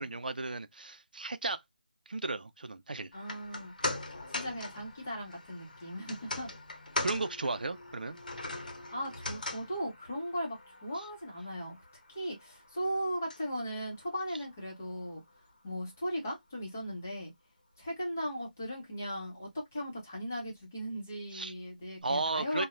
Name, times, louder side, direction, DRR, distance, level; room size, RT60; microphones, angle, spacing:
voice 1, 0.0-1.6 2.1-3.1 7.0-8.2 11.0-11.1 21.3-21.5 22.0-22.7, right 3 dB, 70° right, 0.4 m, -34 dB
sound 1, 3.1-15.5 15.8-15.9, left 2 dB, 65° left, 0.8 m, -41 dB
voice 2, 3.1-3.7 4.3-6.5 8.9-11.8 12.1-15.2 15.6-17.3 17.8-22.7, equal, 15° left, 0.7 m, -37 dB
3.0 x 2.1 x 2.4 m
figure-of-eight pair, 180°, 5 cm